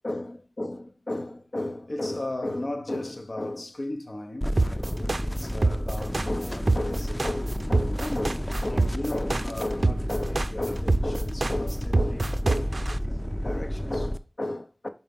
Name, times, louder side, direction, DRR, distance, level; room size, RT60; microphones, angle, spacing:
voice 1, 0.0-14.9, left 1 dB, 80° left, 0.8 m, -34 dB
sound 1, 4.4-14.2, equal, 15° left, 0.4 m, -31 dB
sound 2, 4.6-13.0, right 2 dB, 80° right, 0.3 m, -25 dB
5.7 x 4.2 x 5.3 m
wide cardioid pair, 50°, 0 cm